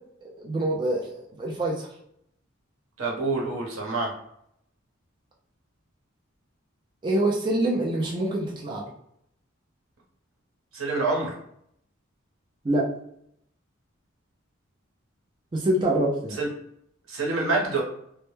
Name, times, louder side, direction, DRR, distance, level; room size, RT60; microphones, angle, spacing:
voice 1, 0.2-1.9 7.0-8.9 12.6-12.9 15.5-16.4, right 1 dB, 25° right, -2 dB, 0.3 m, -26 dB
voice 2, 3.0-4.1 10.7-11.4 16.4-16.5 17.1-17.8, right 3 dB, 85° right, -1 dB, 0.8 m, -26 dB
2.1 x 2.1 x 3.0 m, 0.73 s
head